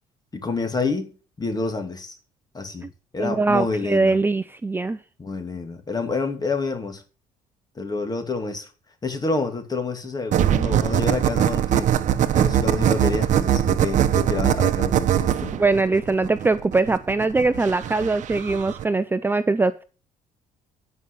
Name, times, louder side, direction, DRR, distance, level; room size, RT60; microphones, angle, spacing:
voice 1, 0.3-1.1 1.4-2.2 2.5-2.9 3.1-4.2 5.2-7.0 7.8-8.7 9.0-11.9 12.3-15.5, left 3 dB, 25° left, 2.5 m, -28 dB
voice 2, 3.2-5.0 15.5-19.8, right 3 dB, 15° right, 0.5 m, -22 dB
sound 1, 10.3-18.8, right 10 dB, 60° right, 0.9 m, -22 dB
9.4 x 5.5 x 8.1 m
cardioid pair, 95°, 15 cm